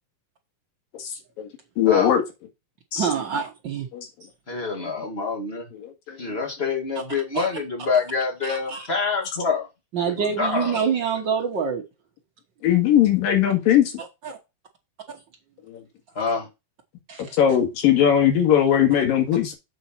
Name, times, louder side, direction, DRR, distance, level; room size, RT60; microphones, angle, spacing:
voice 1, 1.8-2.2 2.9-3.1 3.9-4.0 5.8-6.2 12.6-13.9 17.4-19.5, left 10 dB, 80° left, 3.7 m, -19 dB
voice 2, 2.9-3.9 7.3-7.5 8.4-8.9 9.9-11.8 14.0-14.4 15.1-15.2 17.1-17.4, right 7 dB, 90° right, 1.0 m, -26 dB
voice 3, 4.5-5.7 6.2-9.7 10.1-10.8 16.1-16.5, left 4 dB, 30° left, 1.2 m, -26 dB
7.8 x 4.1 x 5.9 m
omnidirectional pair, 4.0 m